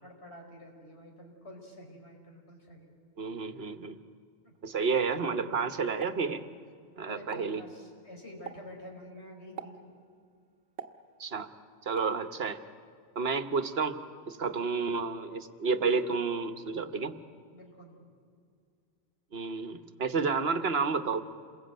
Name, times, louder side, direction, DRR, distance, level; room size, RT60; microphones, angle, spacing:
voice 1, 0.0-2.9 4.4-4.5 7.0-9.8 17.5-18.0, left 1 dB, 80° left, 1 dB, 5.5 m, -48 dB
voice 2, 3.2-4.0 4.6-6.5 7.0-7.6 11.2-11.5 11.8-12.6 13.1-14.0 14.3-17.1 19.3-21.2, right 5 dB, 70° right, 9 dB, 1.4 m, -30 dB
Explosion, 6.0-6.9 7.2-7.6 8.5-8.8 9.6-10.0 10.8-11.5 12.0-12.2, right 6 dB, 90° right, 1.4 m, -45 dB
28.0 x 21.5 x 9.1 m, 2.2 s
omnidirectional pair, 1.1 m